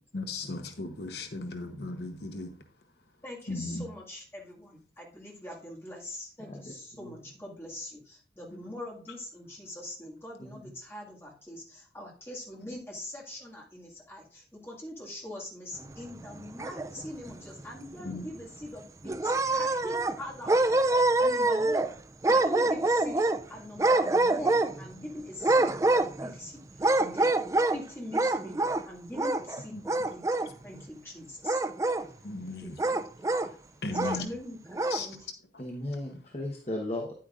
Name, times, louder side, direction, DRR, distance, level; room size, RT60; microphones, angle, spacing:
voice 1, 0.1-2.5 3.5-3.9 8.5-8.6 18.0-18.3 29.7-29.8 32.2-32.8 33.8-34.3 34.9-35.1, left 3 dB, 75° left, 0.9 m, -36 dB
voice 2, 3.2-22.0 22.3-25.9 26.2-26.6 26.9-27.4 27.7-30.2 30.6-31.6 32.6-33.0 34.0-35.3, left 1 dB, 15° left, 2.0 m, -43 dB
sound 1, 16.2-17.1 17.6-17.7 18.0-18.1 19.0-20.2 20.5-21.9 22.2-23.4 23.8-24.9 25.4-26.4 26.8-27.8 28.1-28.8 29.1-29.6 29.9-30.5 31.4-32.1 32.8-33.5 33.9-34.2 34.7-35.0, right 2 dB, 20° right, 0.3 m, -25 dB
voice 3, 35.6-37.1, left 1 dB, 35° left, 1.1 m, -36 dB
9.7 x 8.7 x 2.5 m
head